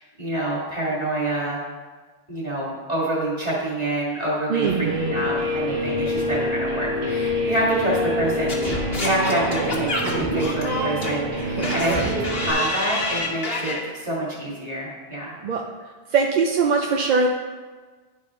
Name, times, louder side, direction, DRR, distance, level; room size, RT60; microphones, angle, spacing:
voice 1, 0.0-1.6 2.3-15.4, right 1 dB, 40° right, -6 dB, 2.3 m, -27 dB
voice 2, 4.5-5.2 11.6-12.1 15.4-15.6 16.1-17.3, right 5 dB, 55° right, 1 dB, 0.6 m, -22 dB
Guitar, 4.6-12.5, equal, 80° right, 1.5 m, -26 dB
Singing / Scratching (performance technique), 8.5-13.8, left 2 dB, 65° left, 1.4 m, -27 dB
10.5 x 4.2 x 3.6 m, 1.4 s
omnidirectional pair, 1.1 m